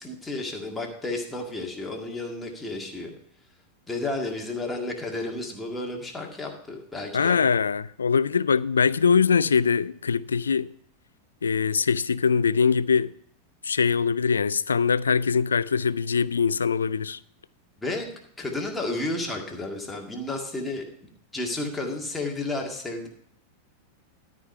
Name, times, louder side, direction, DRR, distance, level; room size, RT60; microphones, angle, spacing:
voice 1, 0.0-3.1 3.9-7.4 17.8-18.1 18.4-20.8 21.3-23.1, left 2 dB, 10° left, 1.9 m, -32 dB
voice 2, 7.1-10.7 11.4-13.1 13.6-17.2, left 6 dB, 70° left, 0.3 m, -22 dB
13.0 x 4.9 x 5.5 m
figure-of-eight pair, 90°, 0 cm